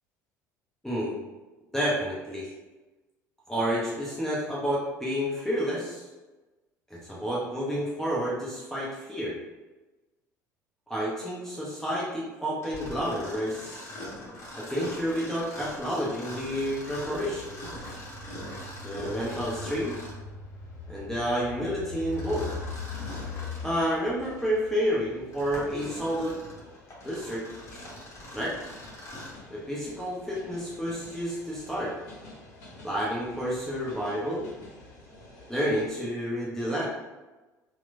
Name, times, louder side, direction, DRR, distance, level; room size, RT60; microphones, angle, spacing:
voice 1, 0.8-1.2 1.7-2.5 3.5-6.0 6.9-9.4 10.9-13.9 14.5-17.6 18.8-20.0 20.9-22.5 23.6-26.4 27.0-27.4 27.7-27.8 28.3-28.6 29.5-31.9 32.8-34.5 35.5-36.9, equal, 5° left, -7 dB, 0.6 m, -30 dB
Mechanisms, 12.6-20.3 22.1-23.7 24.3-24.4 25.1-29.5, left 1 dB, 30° left, 0.9 m, -42 dB
sound 1, 16.4-35.9, left 4 dB, 60° left, 0.6 m, -44 dB
2.9 x 2.0 x 2.4 m, 1.1 s
figure-of-eight pair, 65°, 9 cm